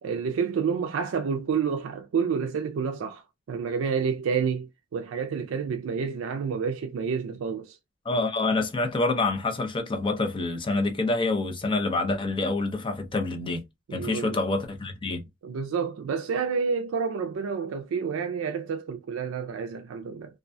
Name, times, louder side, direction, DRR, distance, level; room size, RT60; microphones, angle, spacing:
voice 1, 0.0-3.2 3.5-7.8 13.9-14.4 15.4-20.4, right 6 dB, 90° right, 0.3 m, -29 dB
voice 2, 8.1-13.6 13.9-15.3, left 3 dB, 25° left, 0.5 m, -27 dB
2.4 x 2.1 x 2.5 m
head